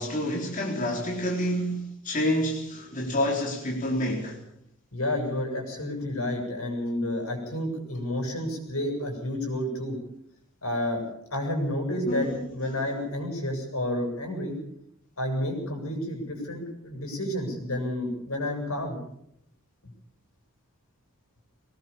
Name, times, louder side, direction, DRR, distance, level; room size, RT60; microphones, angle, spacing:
voice 1, 0.0-4.4 12.1-12.8, equal, 40° left, -1 dB, 4.1 m, -28 dB
voice 2, 4.9-10.0 10.6-11.0 11.3-12.3 12.5-14.6 15.2-19.0, left 1 dB, 80° left, 3 dB, 8.0 m, -30 dB
23.5 x 19.0 x 7.2 m, 0.74 s
head